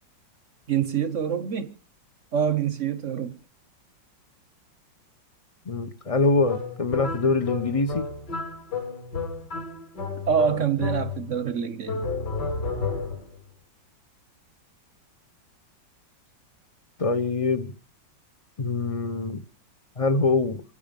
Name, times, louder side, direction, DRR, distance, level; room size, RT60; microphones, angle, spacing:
voice 1, 0.7-1.7 2.3-3.4 10.3-12.0, right 8 dB, 50° right, 1.0 m, -25 dB
voice 2, 5.7-8.1 17.0-17.7 18.6-19.4 20.0-20.6, left 3 dB, 30° left, 0.6 m, -24 dB
sound 1, 6.5-11.4 11.8-13.4, left 4 dB, 60° left, 5.0 m, -32 dB
27.0 x 9.8 x 5.2 m
omnidirectional pair, 2.1 m